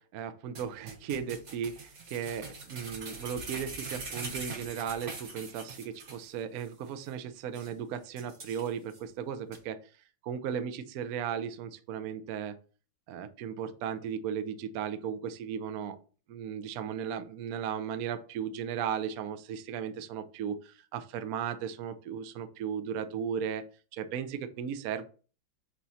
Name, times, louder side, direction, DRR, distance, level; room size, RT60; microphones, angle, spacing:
voice 1, 0.0-9.8 10.2-12.6 13.1-16.0 16.3-23.7 23.9-25.0, right 8 dB, 70° right, 10 dB, 0.8 m, -36 dB
sound 1, 0.6-6.3 6.6-6.7 7.1-7.2 7.5-7.7 8.2-9.0 9.5-9.6, right 3 dB, 40° right, 1.3 m, -42 dB
8.3 x 3.1 x 4.1 m, 0.38 s
omnidirectional pair, 2.3 m